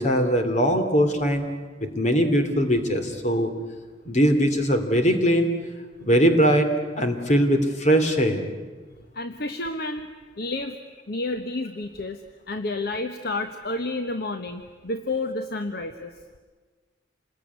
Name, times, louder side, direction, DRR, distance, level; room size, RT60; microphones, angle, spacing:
voice 1, 0.0-1.4 1.8-3.5 4.1-5.5 6.0-6.7 7.0-8.4, equal, 40° left, 6 dB, 2.7 m, -21 dB
voice 2, 9.1-10.1 10.4-10.8 11.1-12.2 12.5-16.1, left 2 dB, 55° left, 8 dB, 1.1 m, -30 dB
27.5 x 20.5 x 9.5 m, 1.4 s
head